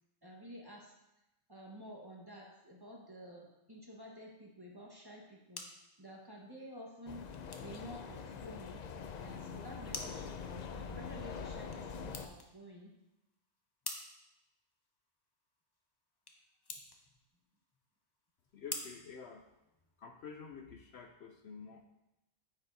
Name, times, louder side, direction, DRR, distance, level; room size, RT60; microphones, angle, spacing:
voice 1, 0.2-0.9 1.5-7.2 7.6-13.0, equal, 20° right, -2 dB, 1.2 m, -51 dB
sound 1, 5.1-20.0, left 2 dB, 25° left, 0.6 m, -51 dB
sound 2, 7.1-12.3, left 6 dB, 85° left, 0.3 m, -44 dB
voice 2, 18.5-19.5 20.0-21.9, left 6 dB, 65° left, 4 dB, 0.8 m, -49 dB
9.5 x 7.2 x 2.7 m, 0.90 s
omnidirectional pair, 1.3 m